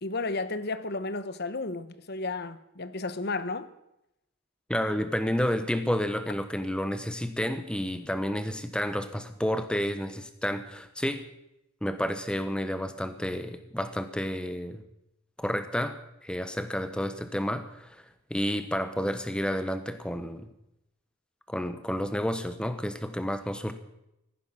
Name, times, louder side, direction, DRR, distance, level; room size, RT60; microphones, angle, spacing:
voice 1, 0.0-3.7, left 3 dB, 50° left, 1.0 m, -33 dB
voice 2, 4.7-11.3 11.8-14.8 15.4-18.0 18.3-20.5 21.5-23.7, equal, 5° left, 1.1 m, -30 dB
16.0 x 14.5 x 6.4 m
head